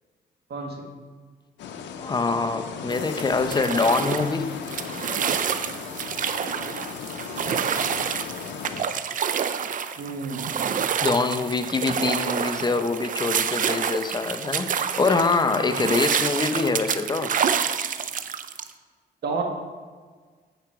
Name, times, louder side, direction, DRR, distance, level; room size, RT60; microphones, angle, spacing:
voice 1, 0.5-0.8 10.0-10.5 19.2-19.4, right 4 dB, 65° right, 2 dB, 1.4 m, -30 dB
sound 1, 1.6-8.8, left 6 dB, 85° left, 0.6 m, -36 dB
voice 2, 2.0-4.6 10.7-17.3, left 4 dB, 25° left, 8 dB, 0.7 m, -24 dB
sound 2, 2.9-18.7, right 7 dB, 50° right, 0.5 m, -28 dB
9.2 x 5.0 x 4.7 m, 1.5 s
cardioid pair, 85°, 18 cm